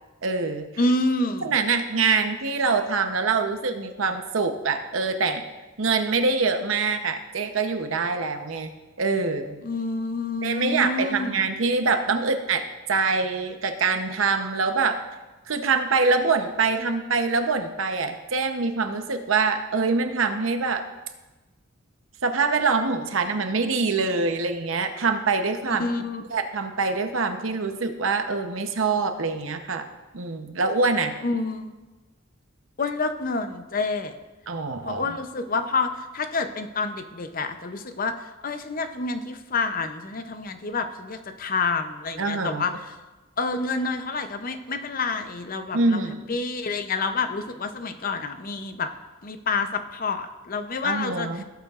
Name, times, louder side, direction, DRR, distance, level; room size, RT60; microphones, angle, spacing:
voice 1, 0.2-0.7 1.4-5.4 5.8-8.7 9.0-9.6 10.4-12.6 12.9-15.0 15.5-20.8 22.2-25.9 26.3-29.9 30.1-31.1 34.5-35.0 42.2-42.6 45.7-46.3 50.8-51.4, right 4 dB, 80° right, 7 dB, 0.9 m, -24 dB
voice 2, 0.8-1.6 9.6-11.4 25.8-26.2 31.2-31.7 32.8-34.1 34.8-42.9 43.4-48.9 49.2-51.4, left 3 dB, 45° left, 8 dB, 0.7 m, -28 dB
16.5 x 8.1 x 2.5 m, 1.1 s
head